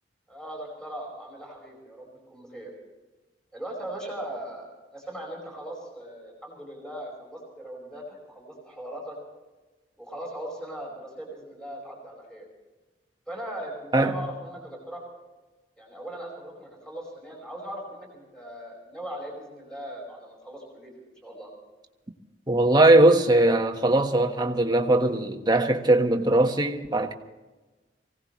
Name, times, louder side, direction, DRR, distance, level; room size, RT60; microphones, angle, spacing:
voice 1, 0.3-2.7 3.5-9.2 10.0-12.4 13.3-15.0 15.8-20.9 21.2-21.5, right 1 dB, 5° left, 5.3 m, -39 dB
voice 2, 13.9-14.3 22.5-27.1, right 2 dB, 25° right, 1.4 m, -20 dB
24.5 x 17.5 x 3.2 m
head